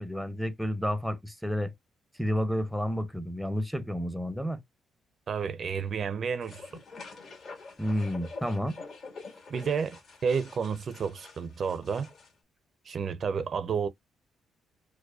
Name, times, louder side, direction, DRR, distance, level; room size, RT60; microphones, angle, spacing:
voice 1, 0.0-1.7 2.2-4.6 7.8-8.8, equal, ahead, 0.6 m, -30 dB
voice 2, 5.3-6.7 9.5-12.1 12.9-13.9, right 6 dB, 50° right, 0.4 m, -31 dB
sound 1, 6.4-12.3, left 4 dB, 55° left, 2.0 m, -46 dB
4.6 x 2.2 x 2.3 m
cardioid pair, 90°, 0 cm